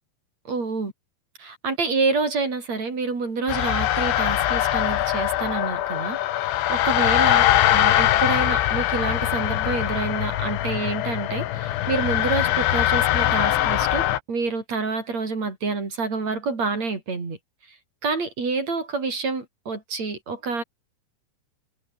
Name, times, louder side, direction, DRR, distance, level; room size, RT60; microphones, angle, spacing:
voice 1, 0.5-0.9 1.4-17.4 18.0-20.6, right 4 dB, 35° right, 5.6 m, -28 dB
sound 1, 3.5-14.2, left 13 dB, 90° left, 4.0 m, -22 dB
omnidirectional pair, 5.3 m